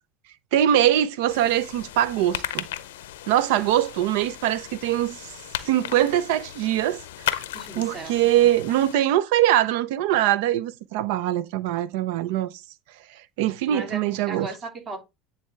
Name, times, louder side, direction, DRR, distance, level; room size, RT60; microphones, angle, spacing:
voice 1, 0.5-2.7 3.3-5.3 5.6-7.4 7.8-12.5 13.4-14.5, right 12 dB, 75° right, 0.5 m, -22 dB
sound 1, 1.3-9.0, left 13 dB, 85° left, 0.6 m, -35 dB
voice 2, 7.4-8.1 13.7-15.0, right 2 dB, 40° right, 2.7 m, -36 dB
9.2 x 3.5 x 3.3 m
hypercardioid pair, 85°, 0 cm